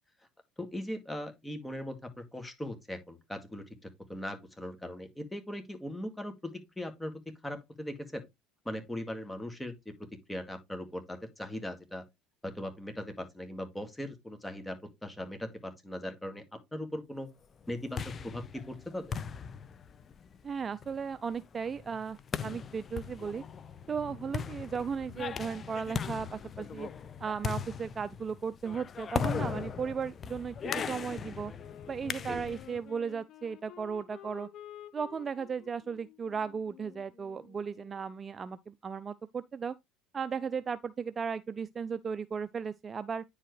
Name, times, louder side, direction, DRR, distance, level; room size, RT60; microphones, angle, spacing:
voice 1, 0.6-6.3 6.8-7.1 7.4-8.2 8.7-9.7 10.3-12.0 12.4-16.4 16.7-17.3 17.7-19.1 32.3-32.5, left 1 dB, 10° left, 2.1 m, -39 dB
sound 1, 17.6-32.8, left 6 dB, 35° left, 0.6 m, -39 dB
voice 2, 20.4-23.4 23.9-26.9 27.2-31.5 31.9-34.5 34.9-39.7 40.1-43.2, right 6 dB, 30° right, 0.4 m, -36 dB
Wind instrument woodwind instrument, 31.6-38.2, left 10 dB, 55° left, 1.0 m, -52 dB
9.8 x 4.8 x 3.2 m
supercardioid pair, 90°, 0 cm